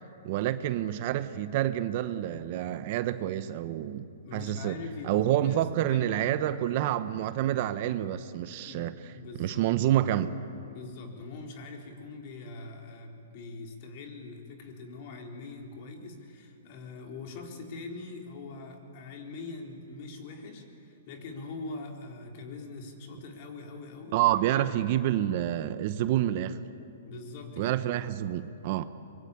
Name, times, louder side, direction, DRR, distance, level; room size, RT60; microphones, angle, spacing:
voice 1, 0.2-4.0 4.3-8.9 9.4-10.4 24.1-26.6 27.6-28.9, right 12 dB, 45° right, 12 dB, 0.9 m, -28 dB
voice 2, 4.2-6.3 8.6-9.7 10.7-25.1 27.1-27.8, left 3 dB, 45° left, 2 dB, 3.9 m, -43 dB
24.0 x 22.0 x 8.5 m, 2.6 s
hypercardioid pair, 150°, 0 cm